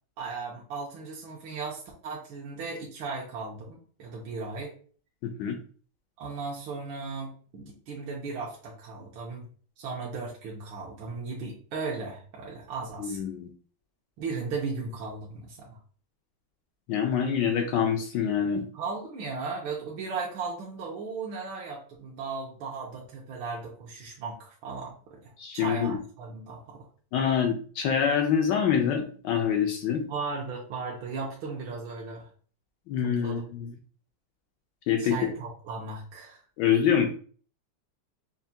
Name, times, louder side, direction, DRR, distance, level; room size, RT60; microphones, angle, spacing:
voice 1, 0.2-4.7 6.2-9.5 9.8-13.2 14.2-15.8 18.7-26.8 30.1-32.3 33.2-33.4 35.0-36.4, right 4 dB, 75° right, -3 dB, 1.6 m, -36 dB
voice 2, 5.2-5.6 13.0-13.5 16.9-18.7 25.4-26.0 27.1-30.1 32.9-33.7 34.9-35.3 36.6-37.1, left 8 dB, 75° left, 3 dB, 1.1 m, -26 dB
5.7 x 2.2 x 2.6 m, 0.43 s
omnidirectional pair, 2.3 m